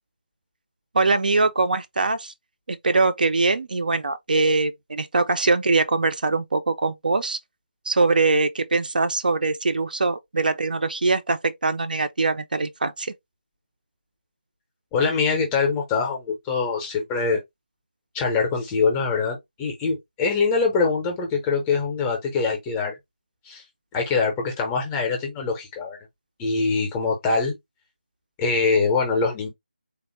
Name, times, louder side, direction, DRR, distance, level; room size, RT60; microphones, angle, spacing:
voice 1, 0.9-2.3 2.7-7.4 7.9-13.1, right 3 dB, 55° right, 0.4 m, -22 dB
voice 2, 14.9-17.4 18.1-23.0 23.5-23.6 23.9-26.0 26.4-27.5 28.4-29.5, left 4 dB, 10° left, 0.5 m, -23 dB
3.4 x 2.0 x 2.9 m
figure-of-eight pair, 165°, 6 cm